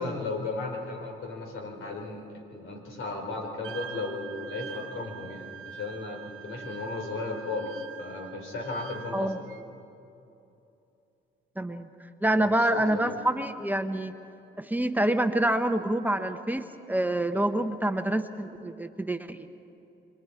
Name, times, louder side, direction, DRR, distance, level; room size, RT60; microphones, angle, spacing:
voice 1, 0.0-9.3 12.4-12.8 13.1-13.2, left 3 dB, 80° left, 1 dB, 4.3 m, -35 dB
Wind instrument woodwind instrument, 3.6-9.6, right 8 dB, 85° right, 1.2 m, -44 dB
voice 2, 11.6-11.9 12.2-14.1 14.6-19.5, right 1 dB, 10° right, 7 dB, 0.9 m, -27 dB
27.5 x 23.5 x 4.8 m, 2.8 s
cardioid pair, 90°, 20 cm